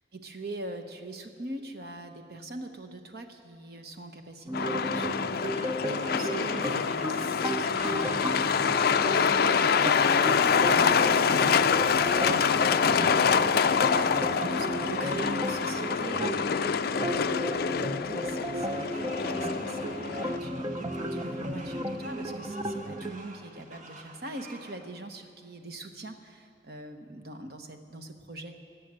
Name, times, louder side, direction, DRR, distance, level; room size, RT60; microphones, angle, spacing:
voice 1, 0.1-20.6 20.9-28.5, right 2 dB, 60° right, 6 dB, 1.2 m, -43 dB
Truck, 4.5-20.4, left 6 dB, 55° left, 0.4 m, -26 dB
sound 1, 4.5-23.1, equal, 20° right, 0.6 m, -34 dB
sound 2, 5.5-24.7, right 2 dB, 40° right, 1.6 m, -46 dB
19.5 x 8.4 x 7.7 m, 2.4 s
head